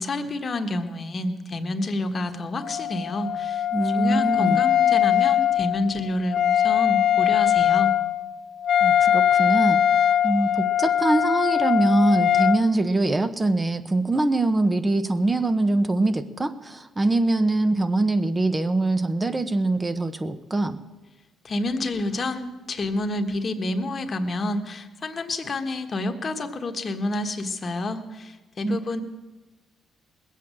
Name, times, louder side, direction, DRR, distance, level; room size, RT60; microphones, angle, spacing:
voice 1, 0.0-3.6 3.9-7.9 21.4-29.0, left 2 dB, 40° left, 7 dB, 1.4 m, -29 dB
Wind instrument woodwind instrument, 2.6-12.6, left 10 dB, 60° left, 0.7 m, -21 dB
voice 2, 3.7-4.6 8.8-9.8 10.2-20.8 28.6-28.8, right 2 dB, 20° right, 11 dB, 1.0 m, -23 dB
20.0 x 8.3 x 7.6 m, 1.2 s
cardioid pair, 90°, 0 cm